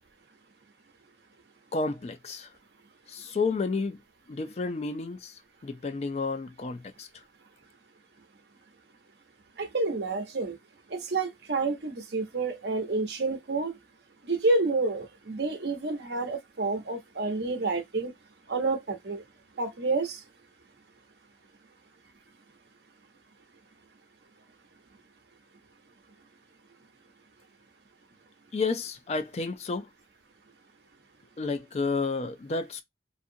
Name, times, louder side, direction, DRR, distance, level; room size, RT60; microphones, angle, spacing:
voice 1, 1.7-2.5 3.1-4.0 4.3-5.3 5.6-7.1 28.5-29.9 31.4-32.8, left 4 dB, 35° left, 0.3 m, -31 dB
voice 2, 9.6-10.6 10.9-13.7 14.2-18.1 18.5-19.2 19.6-20.2, right 3 dB, 70° right, 0.8 m, -29 dB
2.6 x 2.5 x 2.7 m
head